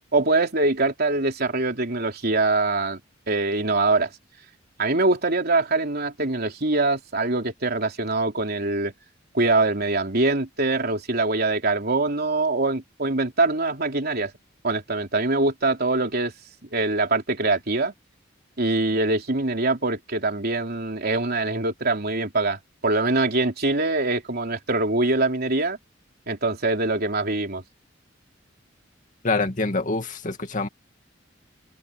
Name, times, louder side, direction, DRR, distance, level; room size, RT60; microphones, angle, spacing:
voice 1, 0.1-3.0 3.3-4.1 4.8-8.9 9.3-14.3 14.6-16.3 16.7-17.9 18.6-25.8 26.3-27.6, right 2 dB, 55° right, 3.6 m, -23 dB
voice 2, 29.2-30.7, left 3 dB, 40° left, 2.3 m, -25 dB
head